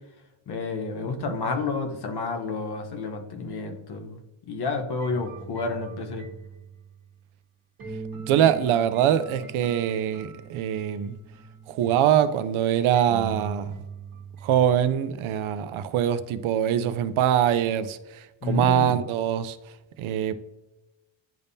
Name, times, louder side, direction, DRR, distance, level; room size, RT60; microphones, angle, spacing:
voice 1, 0.5-4.2 4.5-6.3 18.4-19.0, left 3 dB, 50° left, 1.1 m, -30 dB
sound 1, 5.0-7.2 7.8-12.1 12.9-14.7, right 5 dB, 45° right, 1.6 m, -41 dB
voice 2, 8.3-11.1 11.7-13.8 14.4-19.6 20.0-20.3, right 10 dB, 70° right, 0.6 m, -23 dB
10.5 x 3.5 x 2.7 m
cardioid pair, 155°, 50 cm